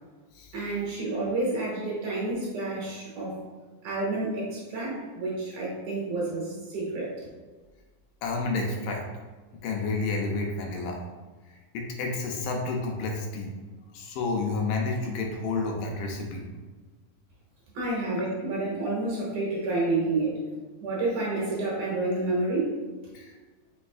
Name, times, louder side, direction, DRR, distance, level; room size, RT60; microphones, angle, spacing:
voice 1, 0.5-3.4 3.8-7.1 17.7-20.5 20.8-22.8, right 2 dB, 70° right, -5 dB, 2.2 m, -29 dB
voice 2, 8.2-9.0 9.6-11.0 11.7-13.5 13.9-16.4 23.1-23.3, left 3 dB, 80° left, 1 dB, 2.2 m, -30 dB
5.4 x 3.4 x 2.3 m, 1.4 s
omnidirectional pair, 4.0 m